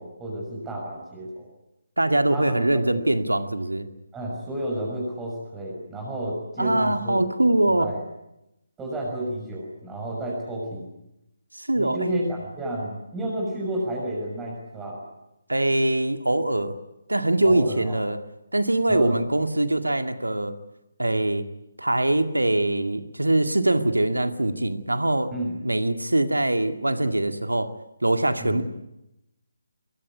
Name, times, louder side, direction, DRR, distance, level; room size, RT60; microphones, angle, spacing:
voice 1, 0.0-1.5 2.3-3.0 4.1-7.3 7.6-8.0 8.8-10.9 11.8-15.0 17.4-18.0 18.9-19.2 25.3-25.6 28.4-28.6, right 1 dB, 10° right, -2 dB, 6.2 m, -31 dB
voice 2, 2.0-3.9 6.6-7.9 11.6-12.1 15.5-16.8 17.1-18.2 18.5-20.5 21.0-21.4 21.8-25.3 25.6-27.7 28.0-28.6, right 1 dB, 75° right, 8 dB, 2.0 m, -23 dB
23.0 x 22.5 x 9.6 m, 0.89 s
figure-of-eight pair, 145°, 0 cm